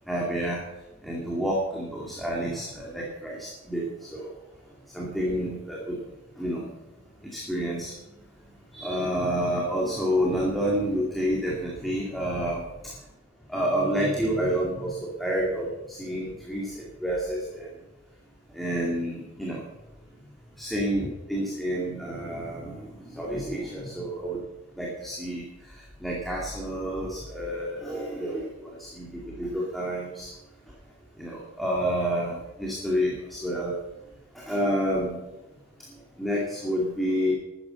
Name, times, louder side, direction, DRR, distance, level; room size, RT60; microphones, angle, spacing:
voice 1, 0.1-0.6 1.0-4.3 4.9-6.0 6.4-6.7 7.2-7.9 8.7-13.0 13.5-17.7 18.5-19.6 20.6-24.4 24.8-30.3 31.2-33.8 34.3-35.2 35.9-37.3, equal, ahead, -3 dB, 2.3 m, -29 dB
13.0 x 9.9 x 7.7 m, 1.1 s
head